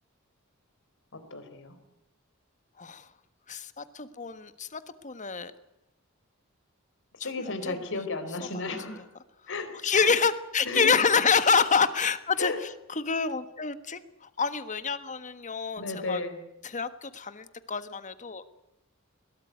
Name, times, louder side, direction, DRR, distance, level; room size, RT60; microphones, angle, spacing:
voice 1, 1.1-1.8 7.2-9.0 9.5-10.1 10.6-11.0 12.4-12.6 15.8-16.4, left 3 dB, 65° left, 9 dB, 4.1 m, -34 dB
voice 2, 2.8-3.1 3.5-5.5 7.2-7.8 8.4-8.5 9.8-16.2 16.6-18.4, left 5 dB, 35° left, 12 dB, 1.4 m, -27 dB
21.5 x 18.0 x 9.4 m, 0.91 s
head